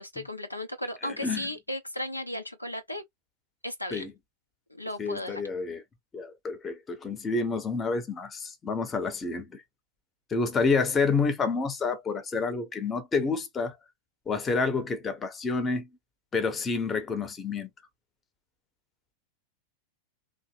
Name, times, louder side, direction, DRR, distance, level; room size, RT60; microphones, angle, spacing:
voice 1, 0.0-3.0 3.6-4.1 4.7-5.4, left 1 dB, 85° left, 0.5 m, -35 dB
voice 2, 5.0-5.8 6.1-9.6 10.3-13.8 14.3-15.9 16.3-17.7, left 4 dB, 20° left, 0.7 m, -29 dB
2.8 x 2.1 x 3.0 m
figure-of-eight pair, 90°, 0 cm